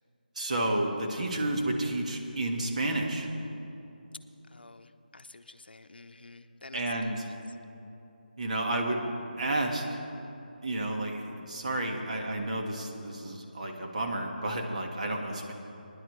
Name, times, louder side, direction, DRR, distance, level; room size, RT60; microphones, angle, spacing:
voice 1, 0.3-3.3 6.7-7.3 8.4-9.1 9.4-10.0 10.6-15.5, right 1 dB, 45° right, 1 dB, 1.6 m, -31 dB
voice 2, 4.5-7.4, left 3 dB, 80° left, 7 dB, 0.7 m, -50 dB
22.0 x 10.5 x 3.2 m, 2.8 s
figure-of-eight pair, 165°, 5 cm